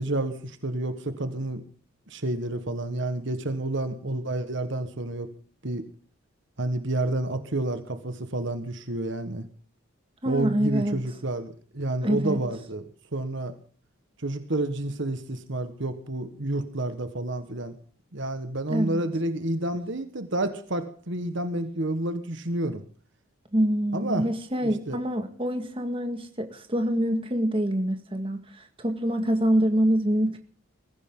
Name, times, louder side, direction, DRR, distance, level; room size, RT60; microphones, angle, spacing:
voice 1, 0.0-1.6 2.1-5.3 5.6-5.8 6.6-9.5 10.2-12.8 13.1-13.5 14.2-17.8 18.1-22.8 23.9-24.3 24.6-25.0, right 2 dB, 55° right, 1.5 m, -29 dB
voice 2, 10.2-11.0 12.0-12.4 18.7-19.0 23.5-30.4, equal, 25° right, 1.9 m, -25 dB
21.5 x 15.0 x 3.8 m
head